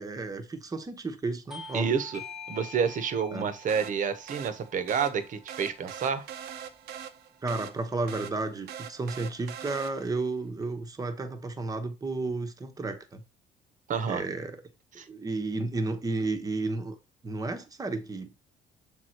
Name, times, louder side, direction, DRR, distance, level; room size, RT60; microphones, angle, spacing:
voice 1, 0.0-2.0 3.3-3.5 7.4-13.2 14.1-14.6 15.1-17.0 17.2-18.3, right 3 dB, 20° right, 1.0 m, -32 dB
Bell / Doorbell, 1.5-6.6, left 3 dB, ahead, 1.1 m, -47 dB
voice 2, 1.7-2.2 2.5-6.3 13.9-14.2 15.0-15.1, right 6 dB, 50° right, 1.0 m, -29 dB
sound 1, 3.7-10.3, right 8 dB, 75° right, 0.8 m, -43 dB
6.5 x 3.6 x 4.4 m
cardioid pair, 110°, 17 cm